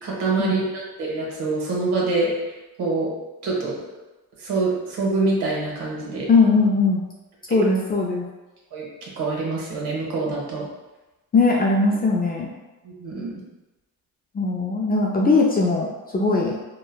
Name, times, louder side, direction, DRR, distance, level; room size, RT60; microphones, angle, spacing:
voice 1, 0.0-2.3 2.8-3.1 3.4-3.7 4.4-6.3 8.7-10.6 12.8-13.3, right 3 dB, 70° right, -4 dB, 1.1 m, -25 dB
voice 2, 6.3-7.0 7.5-8.2 11.3-12.5 14.3-16.5, left 3 dB, 25° left, -2 dB, 0.3 m, -19 dB
3.1 x 2.2 x 2.3 m, 1.1 s
cardioid pair, 80°, 41 cm